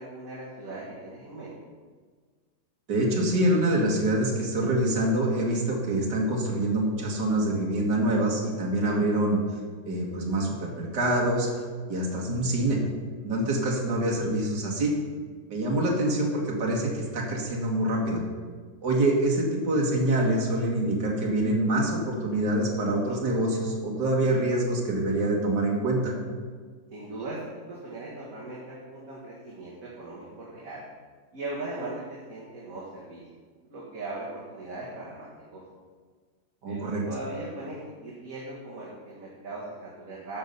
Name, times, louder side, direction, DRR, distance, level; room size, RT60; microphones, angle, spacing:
voice 1, 0.0-1.5 26.9-30.8 31.3-33.2 33.7-35.6 36.7-40.4, right 2 dB, 50° right, -6 dB, 2.3 m, -39 dB
voice 2, 2.9-9.4 9.8-11.5 11.9-12.8 13.2-14.9 15.5-18.2 18.8-26.1 36.6-37.0, right 1 dB, 65° right, -2 dB, 2.4 m, -25 dB
12.0 x 6.6 x 5.5 m, 1.5 s
omnidirectional pair, 2.0 m